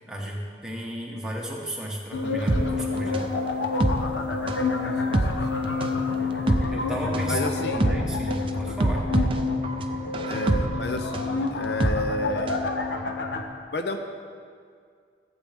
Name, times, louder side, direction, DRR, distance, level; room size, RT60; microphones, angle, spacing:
voice 1, 0.1-3.3 6.7-9.0, right 1 dB, 5° right, -3 dB, 1.4 m, -33 dB
sound 1, 2.1-13.4, left 3 dB, 90° left, 0.9 m, -28 dB
sound 2, 2.5-12.7 13.0-13.1, right 2 dB, 30° right, 0.5 m, -26 dB
voice 2, 4.8-5.2 7.3-7.9 10.3-12.5 13.7-14.0, left 2 dB, 65° left, 5 dB, 0.6 m, -31 dB
14.5 x 8.1 x 3.5 m, 2.1 s
head